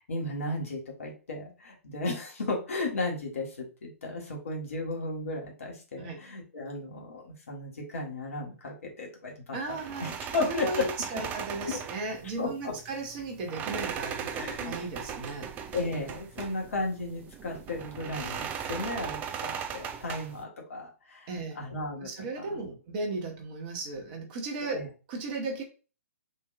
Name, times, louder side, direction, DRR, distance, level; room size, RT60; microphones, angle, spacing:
voice 1, 0.1-10.9 11.7-11.8 12.4-12.7 14.3-14.8 15.7-21.3 21.5-22.1 22.4-22.6 24.7-24.9, left 2 dB, 65° left, 0 dB, 1.6 m, -34 dB
voice 2, 9.5-10.1 10.4-15.5 21.3-21.6 22.0-25.6, right 3 dB, 35° right, 3 dB, 1.5 m, -36 dB
sound 1, 9.7-20.4, right 8 dB, 20° right, 0.5 m, -38 dB
6.2 x 2.9 x 2.5 m, 0.33 s
figure-of-eight pair, 120°, 8 cm